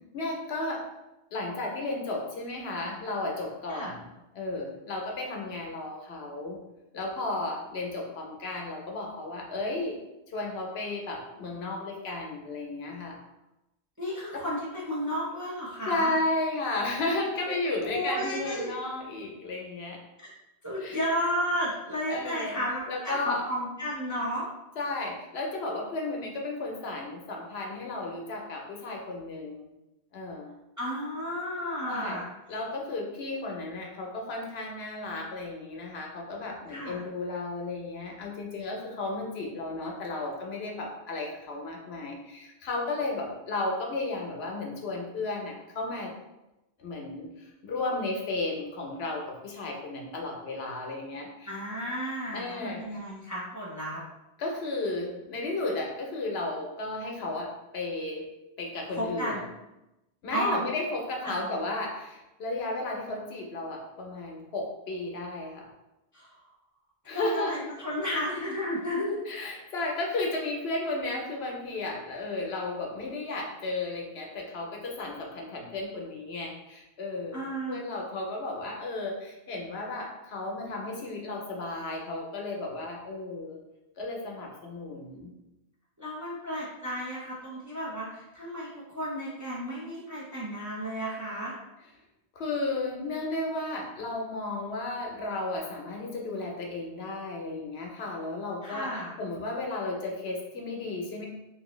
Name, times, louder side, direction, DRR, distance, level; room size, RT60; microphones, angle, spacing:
voice 1, 0.1-0.9 1.3-4.1 4.3-6.6 6.9-10.0 10.3-13.2 14.3-14.4 15.9-20.0 20.8-21.0 22.1-22.6 22.9-23.4 24.8-29.7 30.1-30.5 31.9-32.2 32.5-46.1 46.8-51.5 52.3-52.8 54.4-58.2 58.6-59.4 60.2-65.7 67.0-67.5 69.3-83.6 84.0-85.3 92.3-98.9 99.2-101.3, left 2 dB, 70° left, 0 dB, 0.9 m, -34 dB
voice 2, 14.0-16.1 17.9-18.7 20.2-20.3 20.6-24.5 30.8-32.2 36.7-37.0 51.5-54.0 59.0-59.4 60.3-60.6 61.2-61.4 66.1-66.3 67.1-69.2 77.3-77.8 86.0-91.5 98.6-99.1, equal, 25° right, -6 dB, 0.5 m, -33 dB
2.9 x 2.7 x 3.0 m, 0.94 s
omnidirectional pair, 1.1 m